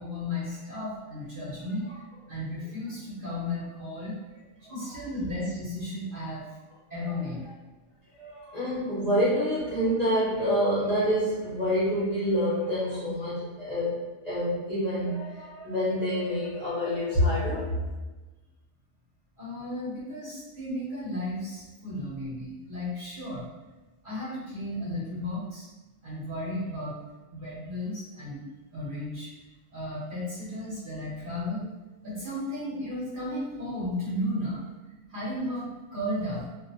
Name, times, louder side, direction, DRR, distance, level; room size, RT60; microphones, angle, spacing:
voice 1, 0.0-2.0 2.3-4.2 4.7-6.5 6.9-7.4 19.4-23.4 24.0-25.7 26.0-27.0 27.3-28.4 28.7-29.3 29.7-31.7 32.0-34.6 35.1-36.5, left 1 dB, 45° right, -9 dB, 0.9 m, -34 dB
voice 2, 8.2-17.8, equal, 35° left, -11 dB, 0.8 m, -27 dB
2.5 x 2.1 x 2.6 m, 1.2 s
omnidirectional pair, 1.4 m